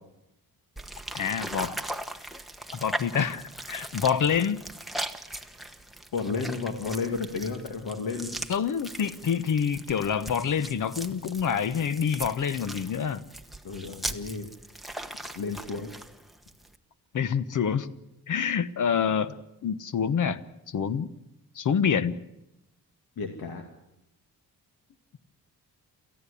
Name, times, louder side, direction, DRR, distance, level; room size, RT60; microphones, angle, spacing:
sound 1, 0.8-16.8, right 1 dB, ahead, 1.1 m, -39 dB
voice 1, 1.1-1.8 2.8-4.6 8.5-13.2 17.1-17.9 18.3-19.3 19.6-20.4 20.7-21.1 21.6-22.2, left 7 dB, 55° left, 14 dB, 1.1 m, -27 dB
voice 2, 6.1-8.4 13.6-14.5 15.2-15.9 23.2-23.6, left 4 dB, 75° left, 4 dB, 2.3 m, -32 dB
28.5 x 14.5 x 8.5 m, 0.89 s
wide cardioid pair, 140°, 37 cm